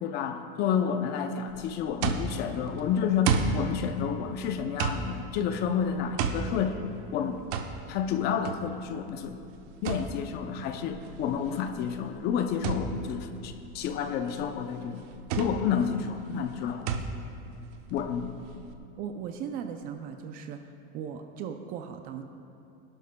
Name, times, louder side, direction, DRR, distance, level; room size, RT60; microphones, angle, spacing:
voice 1, 0.0-6.9 7.1-7.4 7.9-9.4 9.8-15.0 15.4-16.9 17.9-18.3, left 7 dB, 35° left, 7 dB, 0.5 m, -30 dB
sound 1, 1.5-18.7, right 6 dB, 55° right, 0.8 m, -34 dB
voice 2, 19.0-20.6 20.9-22.2, right 7 dB, 30° right, 7 dB, 0.4 m, -37 dB
19.5 x 11.5 x 2.2 m, 2.7 s
supercardioid pair, 160°, 31 cm